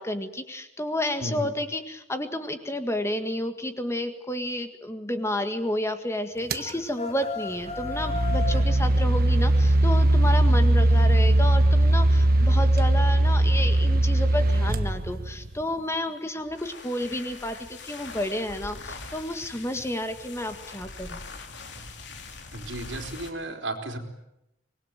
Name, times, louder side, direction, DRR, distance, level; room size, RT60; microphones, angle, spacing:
voice 1, 0.0-21.2, left 1 dB, 15° left, 8 dB, 1.7 m, -31 dB
sound 1, 6.5-6.7 7.6-15.6, right 1 dB, 55° right, 1.2 m, -20 dB
sound 2, 6.6-8.7, left 4 dB, 35° left, 2.3 m, -34 dB
sound 3, 16.4-23.4, left 3 dB, 70° left, 3.1 m, -42 dB
voice 2, 22.5-24.0, right 2 dB, 80° right, 4 dB, 3.9 m, -33 dB
25.0 x 20.0 x 9.1 m, 0.85 s
head